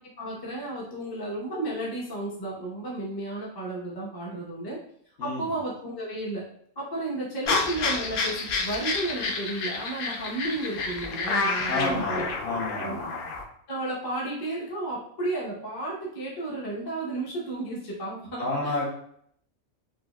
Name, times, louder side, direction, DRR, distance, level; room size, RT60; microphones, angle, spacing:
voice 1, 0.2-4.8 5.2-6.4 6.8-12.3 12.8-12.9 13.7-18.9, right 2 dB, 25° left, -5 dB, 0.6 m, -33 dB
voice 2, 5.2-5.6 11.7-13.3 18.4-18.9, left 2 dB, 60° left, -3 dB, 1.2 m, -30 dB
sound 1, 7.5-13.4, left 4 dB, 80° left, 0.4 m, -29 dB
4.6 x 2.2 x 2.2 m, 0.67 s
omnidirectional pair, 1.5 m